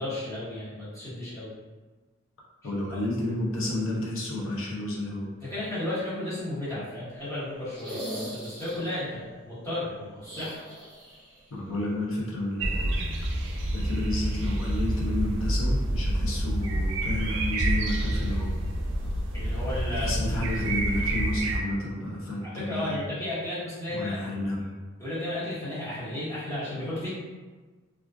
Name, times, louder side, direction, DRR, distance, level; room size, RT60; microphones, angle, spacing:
voice 1, 0.0-1.5 5.4-10.6 19.3-20.2 22.4-24.2 25.0-27.1, left 1 dB, 15° left, -12 dB, 1.0 m, -33 dB
voice 2, 2.6-5.3 11.5-13.0 13.7-18.5 20.0-23.0 23.9-24.7, left 1 dB, 70° left, -3 dB, 0.6 m, -31 dB
sound 1, 7.7-9.1 10.2-11.4 11.7-11.8 13.4-13.5, right 1 dB, 10° right, 0.9 m, -39 dB
sound 2, 12.6-21.6, right 1 dB, 55° right, 0.3 m, -28 dB
2.4 x 2.3 x 2.3 m, 1.3 s
head